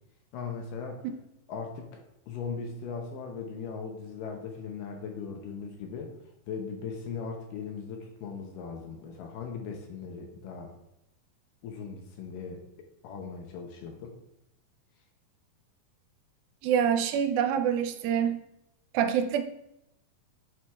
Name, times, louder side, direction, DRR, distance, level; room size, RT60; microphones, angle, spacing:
voice 1, 0.3-1.0 1.5-2.0 2.3-6.1 6.5-10.7 11.6-14.2, left 5 dB, 75° left, 3 dB, 2.2 m, -39 dB
voice 2, 16.6-18.4 18.9-19.4, right 8 dB, 85° right, 8 dB, 2.3 m, -26 dB
10.5 x 4.4 x 2.3 m, 0.82 s
omnidirectional pair, 4.3 m